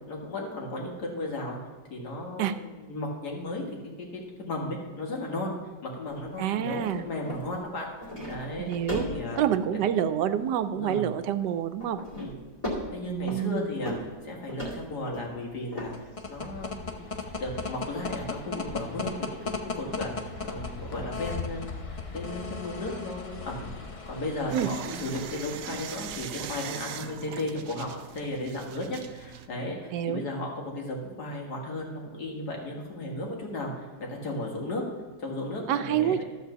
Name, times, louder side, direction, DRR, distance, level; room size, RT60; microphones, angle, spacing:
voice 1, 0.1-1.6 1.9-3.6 4.0-5.5 5.8-7.9 8.3-8.7 9.1-9.4 10.7-11.1 12.2-12.3 12.9-15.9 16.3-23.7 24.0-34.8 35.2-36.2, left 1 dB, 70° left, -1 dB, 2.3 m, -35 dB
sound 1, 6.1-6.2 6.7-7.0 7.3-7.6 8.0-10.4 10.8-10.9 11.8-13.6 13.9-14.2 14.5-15.3 15.7-16.0 16.4-16.5, left 1 dB, 20° left, 2.3 m, -37 dB
voice 2, 6.4-7.1 8.6-9.1 9.4-12.0 13.1-13.7 24.5-24.7 29.9-30.2 35.7-36.2, right 10 dB, 90° right, 11 dB, 1.2 m, -27 dB
sound 2, 15.8-26.6, left 4 dB, 45° left, 0.4 m, -37 dB
sound 3, 24.5-29.5, right 9 dB, 70° right, 0.9 m, -40 dB
13.0 x 4.5 x 6.9 m, 1.3 s
omnidirectional pair, 1.8 m